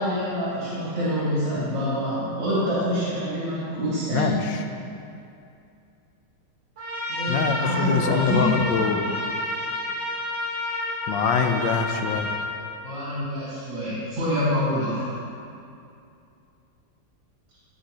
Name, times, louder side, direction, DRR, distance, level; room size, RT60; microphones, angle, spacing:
voice 1, 0.0-4.4 7.1-8.5 12.8-15.1, equal, 80° right, -10 dB, 3.2 m, -26 dB
voice 2, 4.1-4.6 7.3-9.2 11.1-12.3, left 6 dB, 85° left, 6 dB, 1.4 m, -24 dB
Trumpet, 6.8-12.5, left 1 dB, 40° right, 2.0 m, -29 dB
17.0 x 5.6 x 2.9 m, 2.5 s
omnidirectional pair, 2.0 m